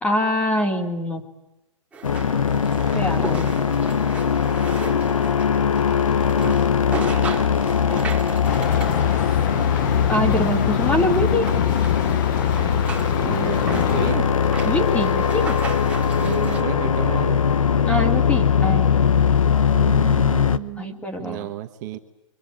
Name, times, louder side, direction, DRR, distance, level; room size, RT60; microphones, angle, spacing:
voice 1, 0.0-1.2 2.9-3.5 7.9-8.0 10.1-11.5 13.4-13.6 14.6-15.6 17.9-18.9 20.8-21.5, left 1 dB, 10° left, 5 dB, 1.9 m, -24 dB
sound 1, 1.9-16.6, right 5 dB, 10° right, 2.5 m, -36 dB
sound 2, 2.0-20.6, left 7 dB, 90° left, 1.2 m, -20 dB
sound 3, 8.4-14.1, left 10 dB, 40° left, 1.3 m, -26 dB
voice 2, 8.9-9.3 13.1-14.3 16.2-17.4 19.6-22.0, right 14 dB, 35° right, 7 dB, 1.3 m, -32 dB
29.5 x 24.0 x 8.2 m, 0.93 s
hypercardioid pair, 145°, 17 cm